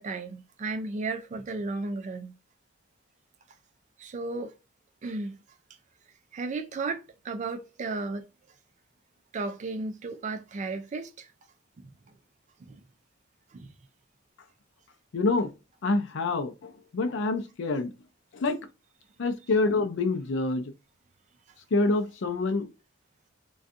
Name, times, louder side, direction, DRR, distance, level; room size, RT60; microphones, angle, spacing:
voice 1, 0.0-2.4 4.0-4.5 5.0-5.4 6.3-8.3 9.3-11.3 11.8-11.9 12.6-12.8 13.5-13.7, right 3 dB, 35° right, 0.3 m, -34 dB
voice 2, 15.1-15.5 15.8-17.9 18.3-18.7 19.2-20.7 21.7-22.7, left 3 dB, 65° left, 0.5 m, -27 dB
2.6 x 2.3 x 2.4 m
head